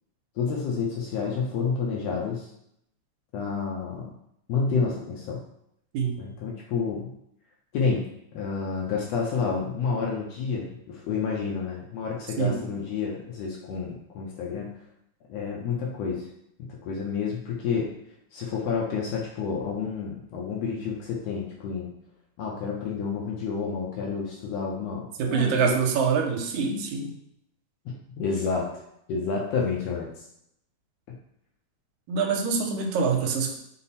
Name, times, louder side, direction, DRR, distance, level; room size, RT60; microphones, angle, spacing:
voice 1, 0.4-2.5 3.3-4.1 4.5-5.4 6.2-7.1 7.7-8.0 8.3-14.7 15.3-16.3 16.6-17.9 18.3-21.9 22.4-25.7 28.2-28.7 29.1-30.1, left 5 dB, 75° left, -2 dB, 1.6 m, -29 dB
voice 2, 25.2-27.2 32.1-33.6, right 6 dB, 85° right, 3 dB, 2.0 m, -25 dB
5.4 x 2.0 x 4.1 m, 0.74 s
omnidirectional pair, 3.4 m